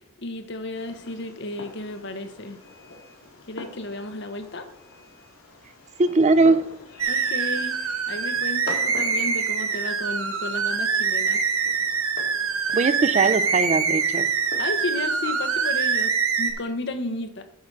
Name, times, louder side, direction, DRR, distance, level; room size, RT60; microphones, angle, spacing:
voice 1, 0.2-2.6 3.5-4.7 7.1-11.4 14.6-17.4, left 2 dB, 55° left, 8 dB, 1.0 m, -33 dB
Fireworks, 0.7-15.9, left 2 dB, 80° left, 2.1 m, -44 dB
voice 2, 6.0-6.7 12.7-14.3, right 3 dB, 30° right, 13 dB, 0.4 m, -20 dB
sound 1, 7.0-16.5, right 5 dB, 80° right, 1.1 m, -24 dB
8.5 x 4.5 x 6.0 m, 0.74 s
head